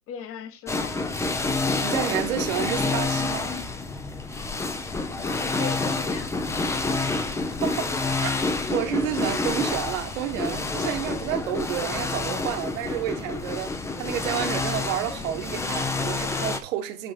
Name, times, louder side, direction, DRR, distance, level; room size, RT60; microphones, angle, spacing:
voice 1, 0.1-1.2 5.2-7.2, left 8 dB, 30° left, 1.4 m, -39 dB
sound 1, 0.7-16.6, left 3 dB, 5° left, 0.6 m, -28 dB
voice 2, 1.8-3.5 7.6-8.4 8.7-17.1, right 11 dB, 60° right, 1.6 m, -30 dB
8.8 x 3.8 x 5.2 m
hypercardioid pair, 120°, 45 cm